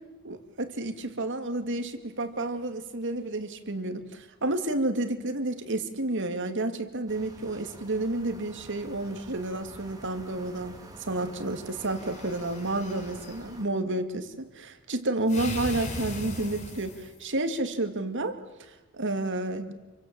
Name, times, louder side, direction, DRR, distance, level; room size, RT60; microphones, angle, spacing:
voice 1, 0.2-19.7, right 2 dB, 55° right, 8 dB, 2.4 m, -31 dB
sound 1, 7.1-13.6, right 1 dB, 15° right, 3.0 m, -48 dB
sound 2, 11.7-13.4 15.3-17.2, left 2 dB, 35° left, 3.6 m, -39 dB
29.0 x 24.5 x 7.7 m, 1.1 s
head